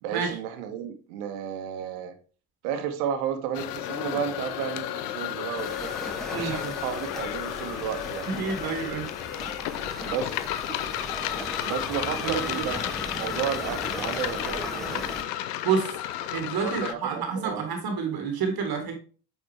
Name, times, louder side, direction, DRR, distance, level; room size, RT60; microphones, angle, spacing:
voice 1, 0.0-2.1 2.6-5.9 6.4-8.3 10.0-10.3 11.7-12.8 13.1-15.0 16.6-17.7, right 9 dB, 65° right, 7 dB, 1.3 m, -32 dB
sound 1, 3.5-16.9, left 12 dB, 70° left, 0.7 m, -33 dB
sound 2, 5.6-15.2, equal, ahead, 1.4 m, -38 dB
voice 2, 8.3-9.1 12.2-12.6 15.6-15.9 16.3-19.0, right 5 dB, 45° right, 4 dB, 1.7 m, -28 dB
8.7 x 4.3 x 3.4 m, 0.38 s
figure-of-eight pair, 50°, 49 cm